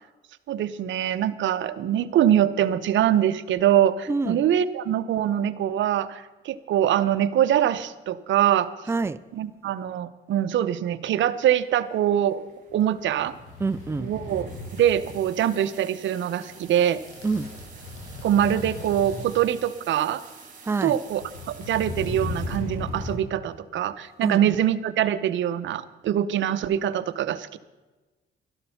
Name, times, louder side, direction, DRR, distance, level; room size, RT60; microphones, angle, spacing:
voice 1, 0.5-8.7 9.3-12.4 12.7-13.3 14.0-14.5 14.7-17.0 18.2-20.2 20.8-27.6, right 10 dB, 70° right, 12 dB, 0.8 m, -23 dB
voice 2, 4.1-4.4 8.9-9.2 13.6-14.1 17.2-17.5 20.6-20.9 24.2-24.4, right 3 dB, 15° right, 14 dB, 0.4 m, -26 dB
sound 1, 11.3-23.1, right 5 dB, 40° right, 3.1 m, -50 dB
sound 2, 12.7-15.2 16.5-16.7 16.9-19.5 20.1-20.2 21.0-23.3 23.5-23.6, left 2 dB, 90° left, 3.2 m, -36 dB
12.5 x 12.0 x 5.7 m, 1.2 s
cardioid pair, 90°, 20 cm